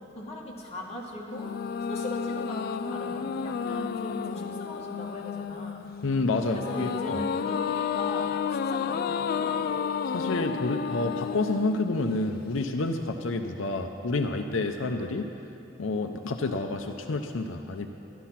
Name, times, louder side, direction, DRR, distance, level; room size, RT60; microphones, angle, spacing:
voice 1, 0.1-1.5 1.9-5.9 6.4-9.7, left 1 dB, 30° left, -3 dB, 1.9 m, -39 dB
sound 1, 1.3-12.7, left 7 dB, 50° left, 0.3 m, -32 dB
voice 2, 6.0-7.2 10.1-15.3 15.8-17.9, left 2 dB, 90° left, 5 dB, 0.6 m, -29 dB
13.5 x 11.0 x 5.8 m, 2.9 s
head